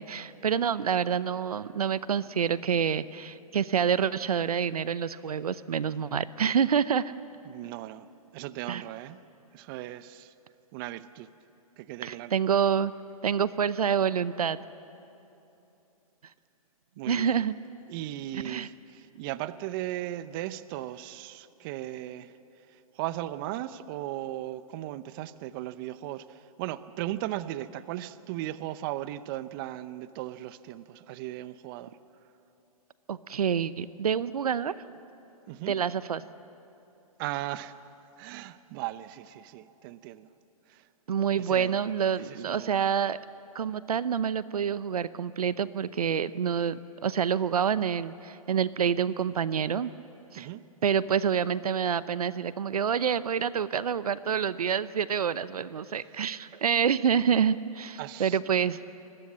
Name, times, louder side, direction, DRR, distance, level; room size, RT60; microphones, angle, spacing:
voice 1, 0.0-7.1 8.7-8.8 12.0-12.9 13.2-14.6 17.1-17.5 18.3-18.7 33.1-34.7 35.7-36.3 41.1-43.2 43.5-49.9 50.3-50.5 50.8-58.8, right 7 dB, 80° right, 16 dB, 0.7 m, -27 dB
voice 2, 7.5-8.1 8.3-9.2 9.5-10.3 10.7-11.3 11.8-12.4 17.0-17.4 17.9-22.3 23.0-31.9 35.5-35.8 37.2-37.7 38.2-40.3 40.7-40.8 41.3-41.8 42.2-42.9 50.4-50.6 58.0-58.4, right 14 dB, 35° right, 15 dB, 0.8 m, -37 dB
28.0 x 22.0 x 7.5 m, 3.0 s
hypercardioid pair, 130°, 19 cm